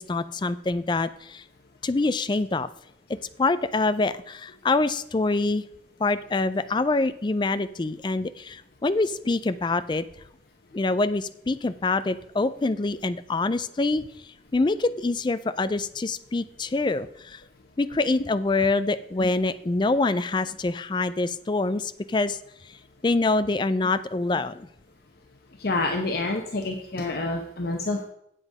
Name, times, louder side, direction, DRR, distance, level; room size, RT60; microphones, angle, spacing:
voice 1, 0.0-1.4 1.8-2.7 3.4-5.6 6.0-10.0 10.7-14.1 14.5-17.4 17.8-22.4 22.7-22.8 23.0-24.7, left 3 dB, 25° left, 13 dB, 0.4 m, -25 dB
voice 2, 25.6-28.0, left 2 dB, 55° left, 3 dB, 0.9 m, -28 dB
8.1 x 7.8 x 4.8 m, 0.74 s
head